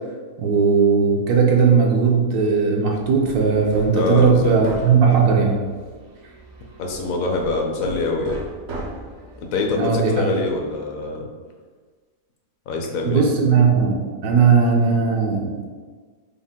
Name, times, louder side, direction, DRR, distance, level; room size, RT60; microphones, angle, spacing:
voice 1, 0.4-5.6 9.7-10.3 13.0-15.6, right 5 dB, 70° right, -1 dB, 1.1 m, -17 dB
Hammer, 2.9-10.8, right 2 dB, 55° right, 0.7 m, -38 dB
voice 2, 3.9-4.5 6.8-8.4 9.4-11.3 12.7-13.3, left 3 dB, 65° left, 1 dB, 0.9 m, -24 dB
5.3 x 2.1 x 3.5 m, 1.5 s
omnidirectional pair, 1.7 m